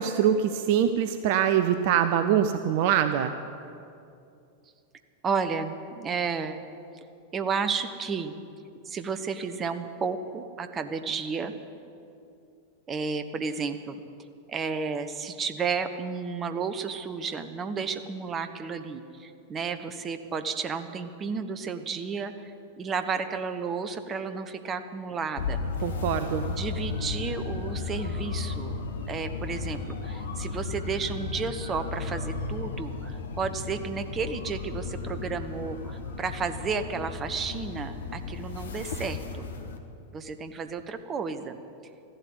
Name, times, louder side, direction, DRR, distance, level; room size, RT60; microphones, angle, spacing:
voice 1, 0.0-3.3 25.8-26.5, right 9 dB, 50° right, 9 dB, 0.6 m, -24 dB
voice 2, 5.2-6.7 7.3-8.4 8.8-11.5 12.9-14.0 14.5-25.6 26.4-28.8 29.1-39.5 40.1-41.6, right 5 dB, 25° right, 9 dB, 1.0 m, -32 dB
sound 1, 25.4-39.8, left 4 dB, 65° left, 1.3 m, -34 dB
14.5 x 12.0 x 8.1 m, 2.6 s
figure-of-eight pair, 90°, 0 cm